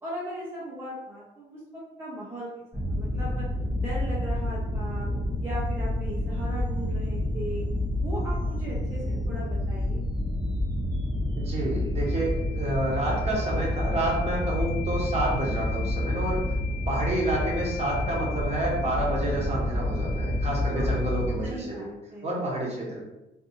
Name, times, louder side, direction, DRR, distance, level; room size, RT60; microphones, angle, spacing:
voice 1, 0.0-3.4 3.8-5.1 5.4-7.6 8.0-10.0 20.7-21.0 21.4-22.4, equal, 10° right, -7 dB, 0.7 m, -38 dB
sound 1, 2.7-21.3, left 1 dB, 15° left, 0.9 m, -29 dB
voice 2, 11.4-16.5 16.9-21.9 22.2-23.0, right 1 dB, 30° right, -4 dB, 1.0 m, -29 dB
2.7 x 2.5 x 2.6 m, 0.94 s
cardioid pair, 90°, 20 cm